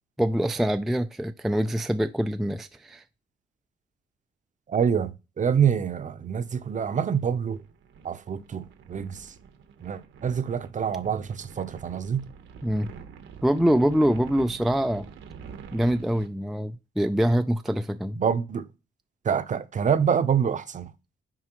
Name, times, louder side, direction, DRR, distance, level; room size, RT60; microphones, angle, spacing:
voice 1, 0.2-3.0 12.6-12.9 13.4-15.1 15.7-18.2, equal, ahead, 0.3 m, -24 dB
voice 2, 4.7-5.1 5.4-7.6 8.0-9.3 9.8-12.2 18.2-18.7 19.2-20.9, right 7 dB, 40° right, 0.7 m, -26 dB
sound 1, 6.2-16.3, right 6 dB, 75° right, 1.0 m, -47 dB
7.5 x 4.7 x 3.0 m
cardioid pair, 90°, 20 cm